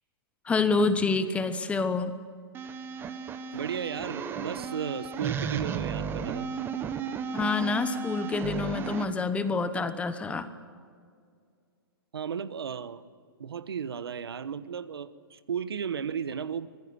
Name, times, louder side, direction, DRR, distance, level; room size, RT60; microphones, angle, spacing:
voice 1, 0.5-2.1 7.3-10.5, left 4 dB, 10° left, 11 dB, 1.0 m, -27 dB
sound 1, 2.5-9.0, right 7 dB, 15° right, 1.2 m, -34 dB
voice 2, 3.5-6.5 12.1-13.0 13.4-16.7, right 7 dB, 80° right, 14 dB, 1.2 m, -34 dB
25.0 x 18.5 x 8.1 m, 2.2 s
hypercardioid pair, 140°, 13 cm